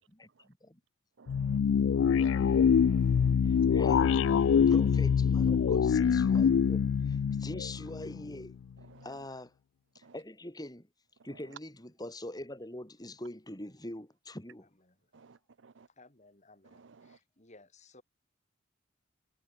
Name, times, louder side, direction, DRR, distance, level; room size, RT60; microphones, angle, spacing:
voice 1, 0.2-0.8 3.4-4.2 4.7-8.6 9.0-9.5 9.9-10.9 11.2-14.7, left 1 dB, 20° left, 3.9 m, -43 dB
voice 2, 1.2-1.6 2.2-3.6 8.9-9.0 10.0-10.1 15.1-15.4 15.6-15.9 17.0-17.2, right 4 dB, 70° right, 0.6 m, -57 dB
sound 1, 1.3-8.5, left 7 dB, 75° left, 0.3 m, -25 dB
voice 3, 14.8-15.1 15.9-18.0, left 2 dB, 40° left, 4.1 m, -60 dB
head